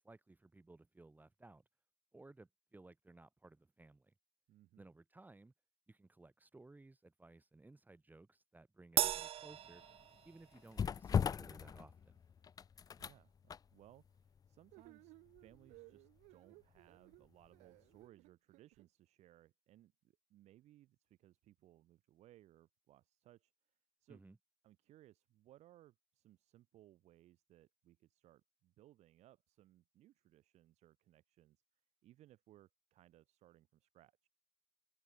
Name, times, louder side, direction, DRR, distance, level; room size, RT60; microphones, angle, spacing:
voice 1, 0.0-1.7 2.1-4.1 4.8-5.5 5.9-9.8 10.2-12.2 24.1-24.4, right 2 dB, 15° right, 1.7 m, -60 dB
voice 2, 4.5-4.8 13.0-13.4 13.7-23.7 24.0-24.2 24.6-31.6 32.0-34.3, right 14 dB, 70° right, 5.5 m, -65 dB
Crash cymbal, 9.0-10.6, right 11 dB, 55° right, 0.6 m, -37 dB
sound 1, 9.5-17.5 17.8-18.0, left 7 dB, 30° left, 0.5 m, -41 dB
sound 2, 14.7-18.9, right 24 dB, 85° right, 2.6 m, -61 dB
supercardioid pair, 85°, 12 cm